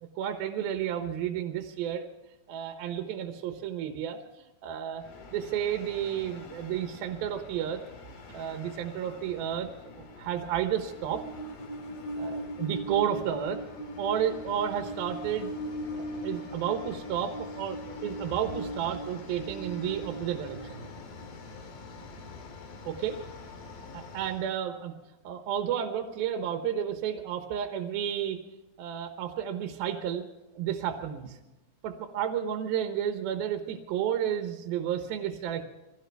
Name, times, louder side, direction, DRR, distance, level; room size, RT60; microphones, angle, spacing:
voice 1, 0.2-2.0 2.5-5.0 5.3-7.8 8.3-9.7 10.0-11.2 12.2-13.6 14.0-15.5 15.9-20.9 22.8-23.1 23.9-24.9 25.2-28.4 28.8-30.3 30.6-31.4 31.8-35.6, right 9 dB, 85° right, 6 dB, 2.9 m, -32 dB
Train, 5.0-24.5, equal, 75° left, 3.7 m, -41 dB
24.0 x 16.5 x 3.4 m, 1.0 s
omnidirectional pair, 4.2 m